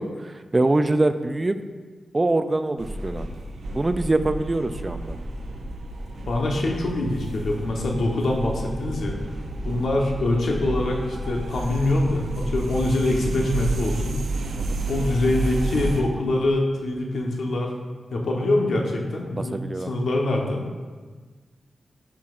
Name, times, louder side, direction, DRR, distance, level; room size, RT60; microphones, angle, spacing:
voice 1, 0.0-1.6 2.1-3.3 3.7-5.2 9.7-9.8 14.6-14.8 19.5-19.9, right 2 dB, 25° right, 10 dB, 0.3 m, -24 dB
sound 1, 2.8-16.0, right 2 dB, 80° right, 0.7 m, -31 dB
voice 2, 6.3-9.2 9.6-14.2 14.9-17.7 18.1-20.6, left 2 dB, 85° left, 0 dB, 1.1 m, -24 dB
10.0 x 5.8 x 2.5 m, 1.4 s
wide cardioid pair, 115°, 0 cm